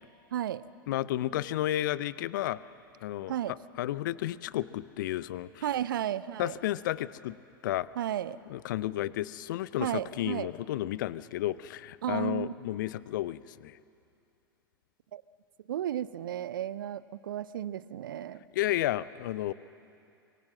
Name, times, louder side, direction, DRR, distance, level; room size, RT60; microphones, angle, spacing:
voice 1, 0.3-0.6 3.3-3.5 5.6-6.6 8.0-8.4 9.8-10.5 12.0-12.5 15.1-15.2 15.7-18.4, right 11 dB, 65° right, 17 dB, 0.7 m, -33 dB
voice 2, 0.9-2.6 3.0-5.6 6.4-7.4 7.6-7.9 8.5-13.8 18.5-19.5, left 14 dB, 60° left, 18 dB, 0.7 m, -32 dB
25.0 x 23.5 x 7.5 m, 2.6 s
figure-of-eight pair, 85°, 12 cm